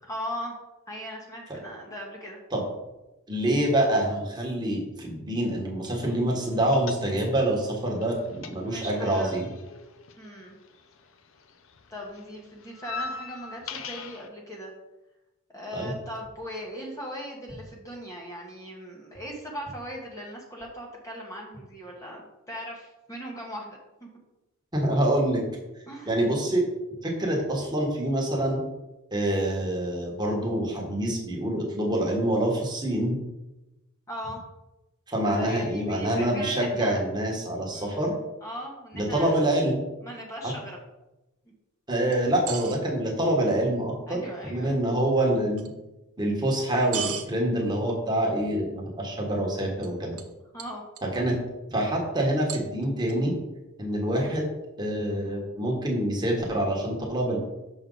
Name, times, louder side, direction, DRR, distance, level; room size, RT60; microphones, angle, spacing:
voice 1, 0.0-0.5 0.9-2.4 8.3-9.3 10.2-10.5 11.9-14.7 15.5-22.2 22.5-24.1 25.9-26.1 34.1-34.4 35.2-37.0 37.7-38.0 38.4-39.5 40.0-40.8 44.1-44.8 50.5-50.8, equal, 15° left, -2 dB, 1.1 m, -39 dB
voice 2, 3.3-9.5 15.7-15.9 24.7-25.4 26.1-26.6 27.0-28.6 29.1-33.2 35.1-38.1 38.9-39.8 41.9-45.7 46.2-50.2 51.0-51.4 51.7-53.3 53.8-54.5 54.8-57.4, right 1 dB, 20° right, -1 dB, 1.4 m, -26 dB
sound 1, 6.7-7.5 7.7-11.1 11.4-14.3, left 4 dB, 65° left, 0.6 m, -40 dB
sound 2, 42.1-42.8 45.6-45.7 46.9-47.3 49.8-49.9 50.2-50.3 50.6-51.2 52.5-53.1, right 9 dB, 90° right, 0.8 m, -35 dB
6.3 x 6.2 x 3.9 m, 0.99 s
head